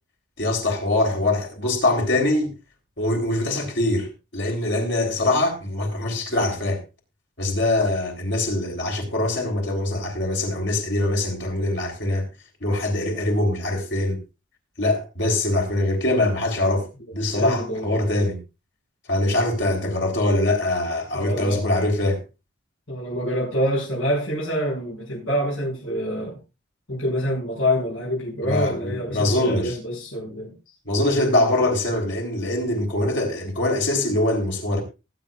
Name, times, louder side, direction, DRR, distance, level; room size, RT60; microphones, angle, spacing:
voice 1, 0.4-2.5 3.0-6.8 7.4-12.3 12.6-14.2 14.8-18.4 19.1-22.2 28.4-29.8 30.9-34.8, left 1 dB, 60° left, 3.6 m, -23 dB
voice 2, 17.3-18.0 21.1-21.6 22.9-26.4 26.9-30.5, equal, 85° left, 6.2 m, -26 dB
19.5 x 9.0 x 2.4 m
head